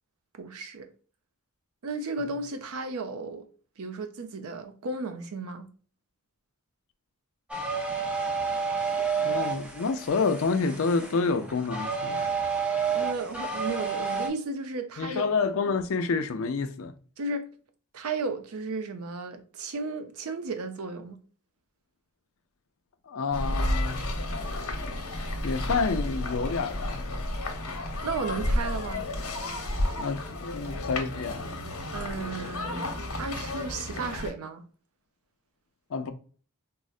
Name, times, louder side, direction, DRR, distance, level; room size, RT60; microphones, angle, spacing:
voice 1, 0.4-0.9 1.8-3.5 3.8-5.7 12.9-15.3 17.2-17.5 17.9-21.2 28.0-29.1 31.9-32.9 33.2-34.6, right 3 dB, 75° right, 0.6 m, -34 dB
sound 1, 7.5-14.3, right 5 dB, 5° right, 0.5 m, -30 dB
voice 2, 9.2-12.3 15.0-16.9 23.1-24.0 25.4-27.2 30.0-31.5 35.9-36.1, left 4 dB, 65° left, 0.4 m, -28 dB
sound 2, 23.3-34.3, left 1 dB, 80° left, 0.8 m, -32 dB
3.8 x 2.0 x 2.3 m
head